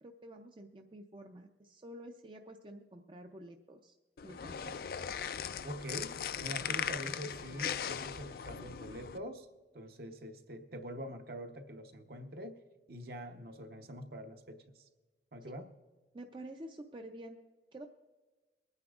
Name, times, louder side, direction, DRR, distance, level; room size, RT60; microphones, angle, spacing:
voice 1, 0.0-4.0 4.2-4.8 15.4-15.6 16.1-17.4 17.7-17.9, right 1 dB, 25° right, 4 dB, 0.5 m, -49 dB
sound 1, 4.2-9.2, left 8 dB, 55° left, 0.3 m, -39 dB
voice 2, 5.6-9.5 9.7-12.6 12.9-14.9 15.3-15.7, equal, 55° right, 6 dB, 0.9 m, -45 dB
23.5 x 9.7 x 2.4 m, 1.3 s
head